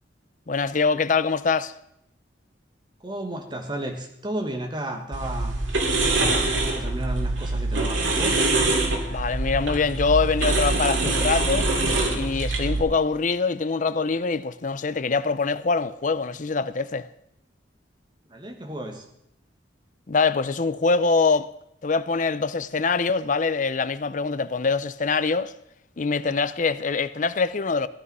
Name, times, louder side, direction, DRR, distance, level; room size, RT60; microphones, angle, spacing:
voice 1, 0.5-1.7 9.1-11.7 12.1-17.1 20.1-21.5 21.8-25.5 26.0-27.9, left 4 dB, 45° left, 0.5 m, -24 dB
voice 2, 3.0-5.6 6.5-8.5 18.3-19.1, right 1 dB, 25° right, 1.7 m, -33 dB
sound 1, 5.1-12.8, right 2 dB, 90° right, 2.7 m, -24 dB
15.0 x 11.0 x 5.5 m
head